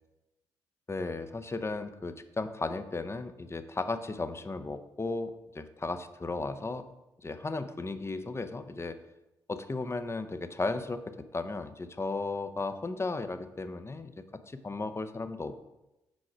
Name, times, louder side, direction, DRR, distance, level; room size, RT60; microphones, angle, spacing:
voice 1, 0.9-6.9 7.2-9.0 9.5-15.7, left 3 dB, 25° left, 10 dB, 0.6 m, -35 dB
6.2 x 4.8 x 4.6 m, 0.97 s
hypercardioid pair, 45°, 11 cm